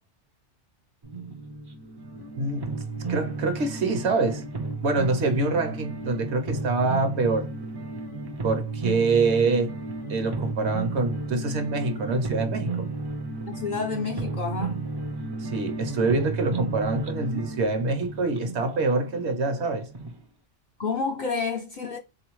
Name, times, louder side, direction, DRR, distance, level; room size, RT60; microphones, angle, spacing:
sound 1, 1.0-20.1, right 3 dB, 35° right, 0.4 m, -33 dB
voice 1, 2.4-2.8 3.1-4.4 4.8-7.5 8.4-9.8 10.1-12.9 15.4-19.9, right 3 dB, 70° right, 1.1 m, -25 dB
voice 2, 13.5-14.8 20.8-22.0, left 4 dB, 55° left, 0.5 m, -29 dB
3.8 x 2.6 x 3.0 m
omnidirectional pair, 1.2 m